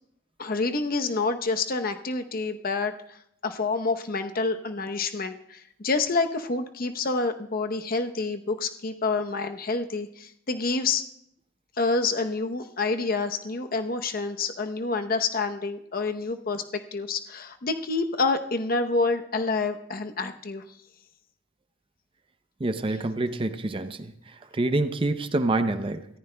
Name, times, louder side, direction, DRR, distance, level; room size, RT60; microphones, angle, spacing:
voice 1, 0.4-3.2 3.4-11.0 11.8-20.6, left 3 dB, 50° left, 7 dB, 0.8 m, -28 dB
voice 2, 22.6-24.1 24.5-26.1, right 2 dB, 25° right, 10 dB, 0.6 m, -26 dB
24.5 x 14.5 x 2.2 m, 0.75 s
head